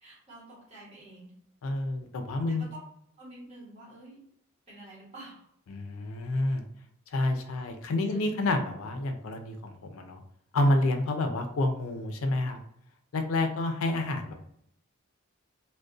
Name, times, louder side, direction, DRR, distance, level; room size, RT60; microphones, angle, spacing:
voice 1, 0.0-1.3 3.2-4.2 4.7-5.5 7.6-7.7 8.0-8.2 13.4-13.5, right 1 dB, 30° right, -7 dB, 1.2 m, -49 dB
voice 2, 1.6-2.7 5.7-6.6 7.1-10.2 10.5-12.6 13.1-14.3, left 2 dB, 75° left, 5 dB, 0.4 m, -29 dB
2.4 x 2.1 x 2.4 m, 0.70 s
head